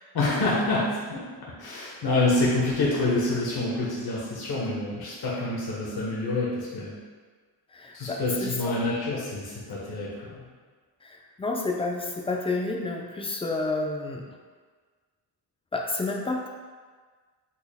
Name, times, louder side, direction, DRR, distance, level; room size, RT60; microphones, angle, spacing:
voice 1, 0.1-7.0 7.9-10.4, left 2 dB, 55° left, -5 dB, 0.9 m, -27 dB
voice 2, 7.7-8.7 11.0-14.3 15.7-16.5, left 3 dB, 15° left, 1 dB, 0.4 m, -30 dB
4.3 x 2.0 x 3.4 m, 1.5 s
cardioid pair, 65°, 44 cm